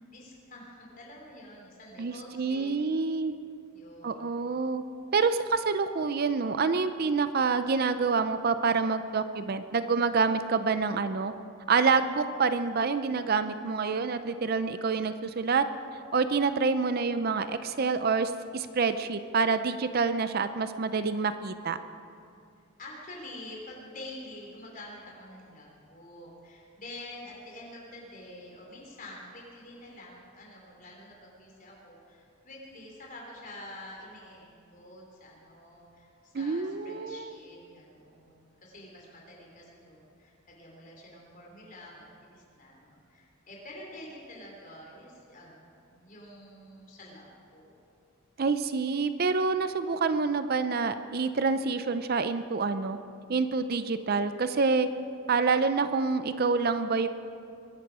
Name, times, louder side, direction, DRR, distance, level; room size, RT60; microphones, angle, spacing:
voice 1, 0.0-2.8 3.7-4.5 22.8-47.8, left 1 dB, 40° left, -2 dB, 3.8 m, -47 dB
voice 2, 2.0-3.3 4.0-4.8 5.1-11.3 11.7-15.6 16.1-21.8 36.3-37.3 48.4-53.0 53.3-54.9 55.3-57.1, right 4 dB, 45° right, 11 dB, 0.5 m, -27 dB
23.0 x 11.0 x 4.9 m, 2.5 s
head